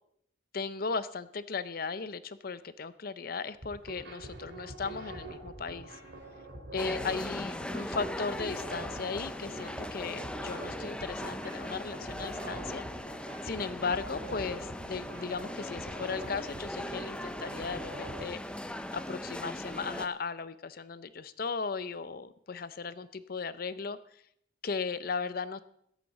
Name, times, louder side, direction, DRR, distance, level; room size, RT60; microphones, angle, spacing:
voice 1, 0.5-6.0 6.7-12.8 13.4-18.4 18.9-24.0 24.6-25.6, left 4 dB, 50° left, 14 dB, 0.6 m, -36 dB
sound 1, 3.5-18.2, right 1 dB, 70° right, 3.3 m, -45 dB
sound 2, 6.8-20.1, left 1 dB, 5° left, 0.5 m, -39 dB
21.0 x 8.3 x 4.1 m, 0.72 s
head